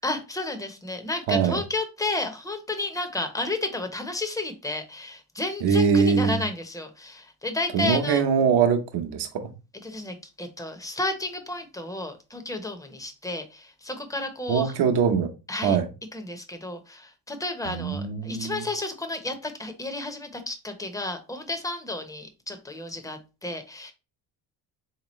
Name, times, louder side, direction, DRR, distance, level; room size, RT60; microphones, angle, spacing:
voice 1, 0.0-8.2 9.8-14.7 15.5-15.8 16.1-23.9, left 2 dB, 10° left, 0.8 m, -32 dB
voice 2, 1.3-1.6 5.6-6.4 7.7-9.5 14.5-15.3 15.6-15.9 17.6-18.6, right 6 dB, 60° right, 0.9 m, -22 dB
3.6 x 3.0 x 3.0 m
supercardioid pair, 85°, 45 cm